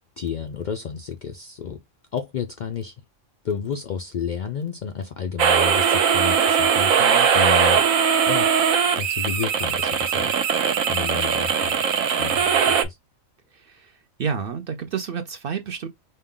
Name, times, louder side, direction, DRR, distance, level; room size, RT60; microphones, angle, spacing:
voice 1, 0.2-1.8 2.1-2.9 3.4-7.9 8.3-8.5 9.0-10.3 10.9-11.7 12.2-13.0, left 7 dB, 85° left, 0.4 m, -31 dB
sound 1, 5.4-12.8, right 7 dB, 90° right, 1.1 m, -20 dB
voice 2, 7.0-7.3 13.5-13.9 14.2-15.9, right 6 dB, 60° right, 0.6 m, -30 dB
5.4 x 2.2 x 3.6 m
omnidirectional pair, 1.4 m